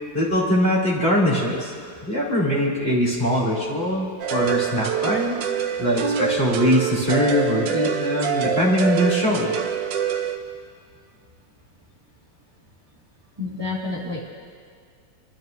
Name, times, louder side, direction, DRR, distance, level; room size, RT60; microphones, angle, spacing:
voice 1, 0.1-1.7 2.0-5.4 5.8-9.5, equal, 30° left, -7 dB, 3.2 m, -22 dB
sound 1, 4.2-10.4, right 8 dB, 75° right, 1.4 m, -25 dB
voice 2, 13.4-14.2, left 3 dB, 15° right, -6 dB, 2.0 m, -29 dB
28.5 x 12.5 x 2.7 m, 2.1 s
omnidirectional pair, 2.0 m